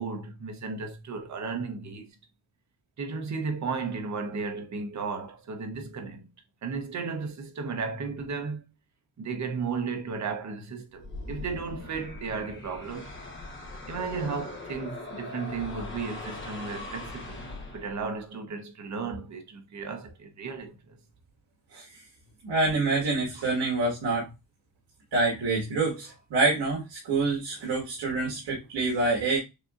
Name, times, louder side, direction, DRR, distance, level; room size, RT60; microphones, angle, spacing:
voice 1, 0.0-2.2 3.0-6.3 6.6-8.6 9.2-13.2 13.9-17.5 17.7-21.0 28.0-28.2, right 5 dB, 40° right, 0.9 m, -34 dB
sound 1, 10.9-18.2, left 2 dB, 30° left, 1.0 m, -40 dB
voice 2, 22.4-24.3 25.1-29.4, right 3 dB, 75° right, 1.7 m, -26 dB
6.5 x 2.7 x 2.4 m
wide cardioid pair, 175°, 42 cm